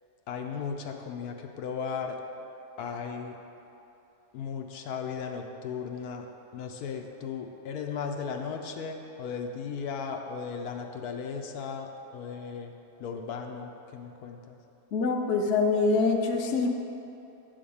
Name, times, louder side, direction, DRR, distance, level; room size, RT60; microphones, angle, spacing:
voice 1, 0.3-2.2 2.8-3.4 4.3-6.3 6.5-12.7 13.0-14.6, left 6 dB, 80° left, 3 dB, 1.2 m, -36 dB
voice 2, 14.9-16.7, left 4 dB, 55° left, 2 dB, 0.9 m, -25 dB
10.0 x 3.7 x 7.0 m, 2.8 s
omnidirectional pair, 1.6 m